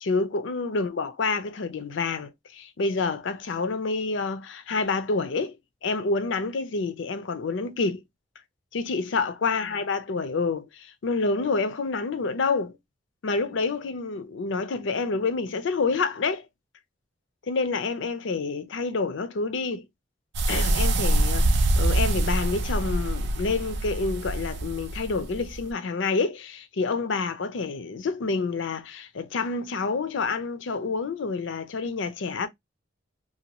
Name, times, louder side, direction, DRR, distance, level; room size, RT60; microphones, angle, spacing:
voice 1, 0.0-5.6 5.8-8.0 8.7-12.7 13.2-16.4 17.5-19.8 20.5-32.5, left 4 dB, 70° left, 0.5 m, -28 dB
sound 1, 20.3-25.7, right 2 dB, 60° right, 0.4 m, -25 dB
2.6 x 2.2 x 2.8 m
head